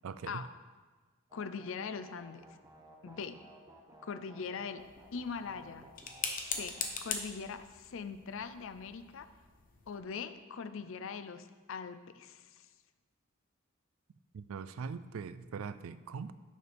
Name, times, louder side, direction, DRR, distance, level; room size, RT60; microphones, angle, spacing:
voice 1, 0.0-0.4 14.3-16.3, right 5 dB, 80° right, 14 dB, 0.4 m, -41 dB
voice 2, 1.3-2.4 3.0-3.4 4.0-4.8 5.1-5.9 6.5-9.3 9.9-12.7, left 5 dB, 65° left, 12 dB, 0.5 m, -41 dB
sound 1, 1.3-6.9, right 1 dB, 15° right, 0.9 m, -56 dB
sound 2, 4.8-10.0, left 5 dB, 45° left, 0.8 m, -42 dB
10.5 x 6.5 x 3.5 m, 1.3 s
head